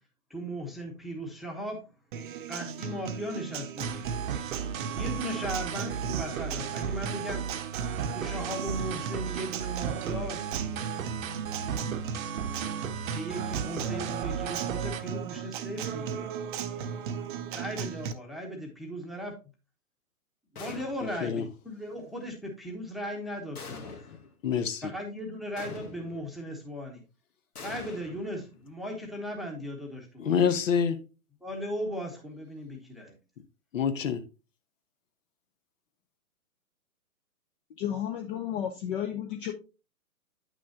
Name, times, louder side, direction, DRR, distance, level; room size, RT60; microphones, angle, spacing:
voice 1, 0.3-1.8 2.5-4.2 4.9-7.4 8.1-10.5 13.1-16.3 17.5-19.3 20.5-24.0 24.8-27.0 27.6-30.4 31.4-33.2, equal, ahead, 1.0 m, -37 dB
Acoustic guitar, 2.1-18.1, right 7 dB, 35° right, 0.7 m, -37 dB
sound 1, 3.8-15.0, right 7 dB, 65° right, 1.0 m, -35 dB
Mortar Shots, 20.6-21.3 23.6-24.3 25.6-26.3 27.6-28.8, left 4 dB, 80° left, 1.9 m, -44 dB
voice 2, 24.4-24.9 30.2-31.0 33.7-34.2, left 7 dB, 60° left, 1.0 m, -26 dB
voice 3, 37.7-39.5, left 10 dB, 35° left, 0.8 m, -32 dB
8.8 x 6.2 x 2.8 m
hypercardioid pair, 130°, 45 cm